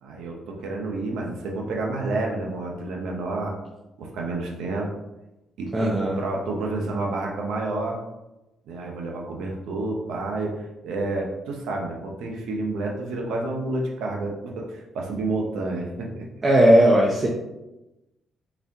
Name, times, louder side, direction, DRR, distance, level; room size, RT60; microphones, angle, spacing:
voice 1, 0.0-3.6 4.0-4.9 5.6-8.0 8.7-16.3, right 2 dB, 85° right, 0 dB, 0.8 m, -29 dB
voice 2, 5.7-6.2 16.4-17.3, equal, 35° right, -2 dB, 0.7 m, -17 dB
4.1 x 3.5 x 2.8 m, 0.98 s
cardioid pair, 90°, 0 cm